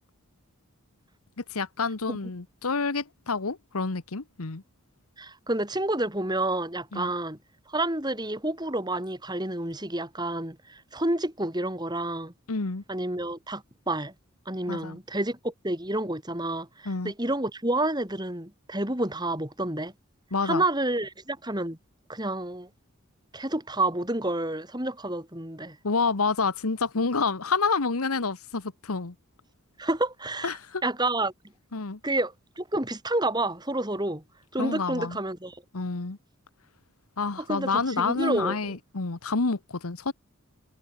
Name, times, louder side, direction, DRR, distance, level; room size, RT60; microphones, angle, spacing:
voice 1, 1.5-4.6 6.9-7.1 12.5-12.8 14.7-15.0 16.8-17.1 20.3-20.6 25.8-29.1 30.4-30.8 31.7-32.0 34.6-35.2 35.7-36.2 37.2-40.1, left 4 dB, 85° left, 1.3 m, -28 dB
voice 2, 5.2-7.4 7.7-12.3 12.9-14.1 14.5-19.9 20.4-21.8 22.1-22.7 23.3-25.8 29.8-30.6 30.8-31.3 32.0-34.2 34.5-35.6 37.5-38.8, right 2 dB, 20° right, 4.6 m, -29 dB
head